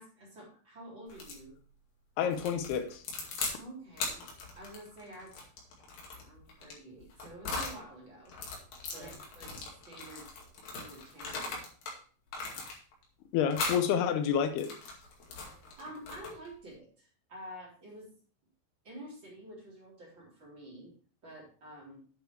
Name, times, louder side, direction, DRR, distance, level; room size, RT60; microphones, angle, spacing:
voice 1, 0.0-1.6 3.6-4.2 4.5-5.3 6.1-8.3 8.9-10.3 10.7-11.7 15.5-18.1 18.8-20.9 21.2-22.0, right 1 dB, 30° right, -4 dB, 4.2 m, -49 dB
sound 1, 1.1-1.4 2.3-3.6 3.9-7.8 8.3-12.0 12.3-13.0 13.5-13.9 14.4-16.5, left 3 dB, 60° left, 3.9 m, -39 dB
voice 2, 2.2-3.0 13.3-14.7, left 8 dB, 80° left, 9 dB, 2.9 m, -29 dB
9.1 x 8.0 x 4.6 m, 0.41 s
omnidirectional pair, 4.6 m